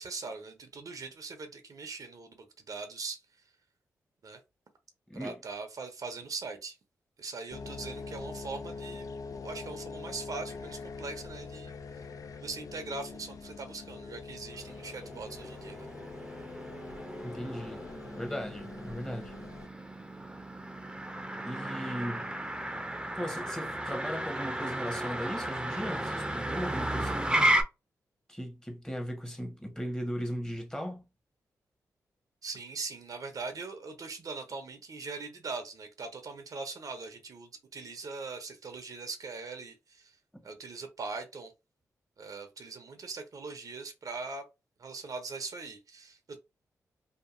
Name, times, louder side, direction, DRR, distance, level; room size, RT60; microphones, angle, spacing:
voice 1, 0.0-3.2 4.2-4.4 5.2-6.8 7.2-9.1 9.4-12.1 12.4-15.9 32.4-40.2 40.4-41.5 42.2-44.5 44.8-46.4, right 4 dB, 60° right, 0.7 m, -41 dB
sound 1, 7.5-19.7, left 4 dB, 55° left, 0.4 m, -44 dB
Motor vehicle (road), 14.5-27.6, right 1 dB, 10° right, 0.6 m, -34 dB
voice 2, 17.2-17.8 18.2-19.3 21.4-22.3 23.1-27.2 28.3-31.0 40.3-40.4, equal, 10° left, 1.0 m, -37 dB
2.8 x 2.5 x 2.5 m
supercardioid pair, 45°, 7 cm